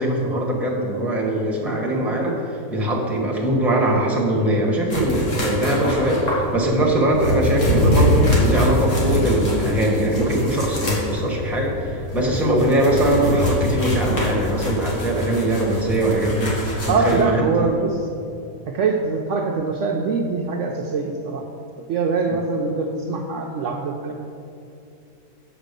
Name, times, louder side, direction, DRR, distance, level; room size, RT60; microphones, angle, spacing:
voice 1, 0.0-2.3 2.7-17.7, right 1 dB, ahead, -1 dB, 1.1 m, -21 dB
sound 1, 4.9-17.2, left 1 dB, 55° left, 2.1 m, -24 dB
voice 2, 16.9-18.1 18.7-21.5 21.9-24.1, right 4 dB, 65° right, 1 dB, 0.8 m, -23 dB
7.3 x 5.1 x 6.6 m, 2.6 s
omnidirectional pair, 1.6 m